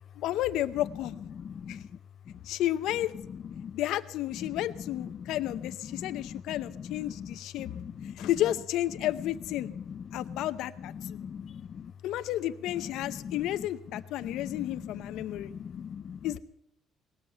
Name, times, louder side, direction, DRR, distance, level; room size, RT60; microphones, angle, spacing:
voice 1, 0.2-1.1 1.7-1.8 2.5-3.1 3.7-7.7 8.2-9.7 10.1-11.2 12.0-15.5 16.2-16.4, left 13 dB, 80° left, 13 dB, 0.7 m, -32 dB
voice 2, 1.3-1.8 3.6-3.8 4.4-4.5 5.0-5.3 5.6-7.4 7.6-8.3 9.9-10.4 11.0-11.9 13.0-13.4 14.2-16.2, left 7 dB, 40° left, 10 dB, 0.5 m, -41 dB
19.0 x 7.5 x 9.0 m, 0.80 s
cardioid pair, 160°, 0 cm